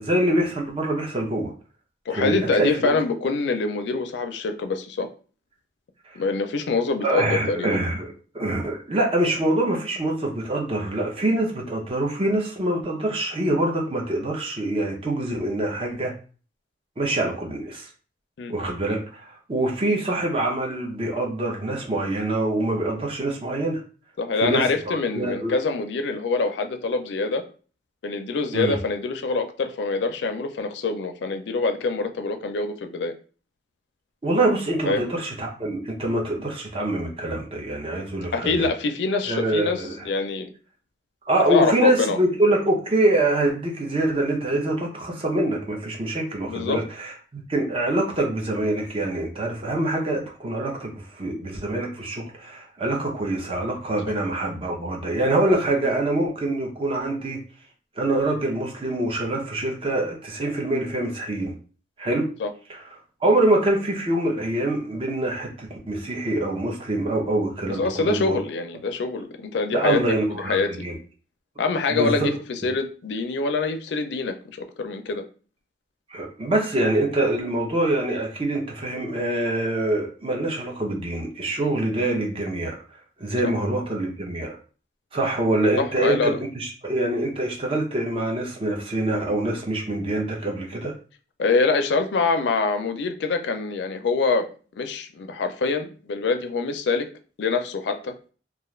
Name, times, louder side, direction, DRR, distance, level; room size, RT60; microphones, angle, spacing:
voice 1, 0.0-1.5 2.1-2.9 7.0-16.1 17.0-17.9 18.5-23.8 24.4-25.5 28.5-28.8 34.2-38.7 39.3-40.1 41.3-57.4 58.0-61.5 62.0-62.3 62.7-62.8 63.2-68.4 69.7-70.9 71.9-72.3 76.1-82.8 83.2-84.6 85.1-90.9, right 1 dB, 30° right, 0 dB, 0.6 m, -25 dB
voice 2, 2.1-5.1 6.2-7.8 18.4-18.5 24.2-27.4 28.0-33.1 34.9-35.1 38.3-40.5 41.5-42.2 46.5-46.8 62.4-62.5 67.6-70.0 70.3-70.9 71.6-75.2 83.4-83.5 85.8-86.4 91.4-94.5 94.8-97.1 97.4-98.1, left 4 dB, 75° left, 7 dB, 0.4 m, -25 dB
2.4 x 2.3 x 3.0 m, 0.39 s
head